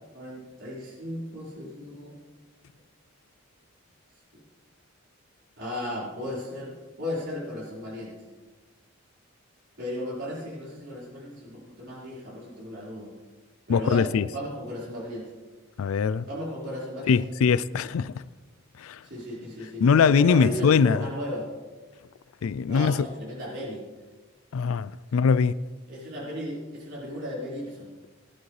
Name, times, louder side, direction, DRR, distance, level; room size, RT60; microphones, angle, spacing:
voice 1, 0.1-2.2 4.3-4.4 5.6-8.1 9.8-13.1 13.7-15.3 16.3-17.2 19.0-21.5 22.7-23.9 25.9-27.9, left 1 dB, 55° right, 4.5 m, -35 dB
voice 2, 13.7-14.3 15.8-16.3 17.1-18.2 18.8-19.0 19.8-21.0 22.4-23.1 24.5-25.5, left 6 dB, 80° left, 0.4 m, -22 dB
19.5 x 11.0 x 3.2 m
head